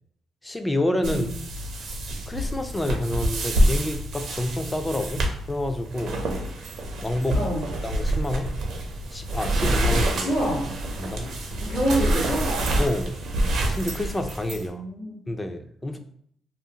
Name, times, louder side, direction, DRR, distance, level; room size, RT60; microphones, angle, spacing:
voice 1, 0.4-1.4 1.8-2.0 2.3-6.3 7.0-7.4 7.8-8.5 9.1-10.3 11.0-11.3 12.8-13.2 13.7-14.8 15.3-16.0, left 1 dB, 15° left, 6 dB, 0.3 m, -28 dB
sound 1, 1.0-14.7, right 1 dB, 70° right, 0.5 m, -27 dB
voice 2, 7.3-7.7 10.2-10.6 11.6-12.5 14.5-15.2, equal, 85° left, -5 dB, 1.1 m, -26 dB
2.5 x 2.3 x 2.7 m, 0.64 s
cardioid pair, 90°, 0 cm